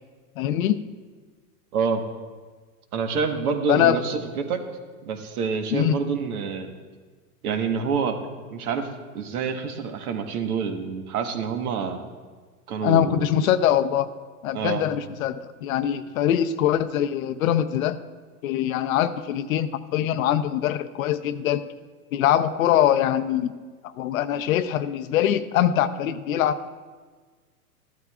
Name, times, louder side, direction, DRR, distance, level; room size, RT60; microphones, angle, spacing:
voice 1, 0.4-0.8 3.7-4.0 5.7-6.0 12.8-14.1 14.4-18.0 18.4-21.6 22.1-23.5 24.0-26.7, left 10 dB, 60° left, 11 dB, 0.7 m, -23 dB
voice 2, 1.7-2.0 2.9-4.6 5.0-6.7 7.4-8.2 8.5-8.9 9.1-12.1 12.7-13.3 14.5-14.8, right 6 dB, 65° right, 6 dB, 1.4 m, -27 dB
14.5 x 12.0 x 2.4 m, 1.5 s
hypercardioid pair, 130°, 47 cm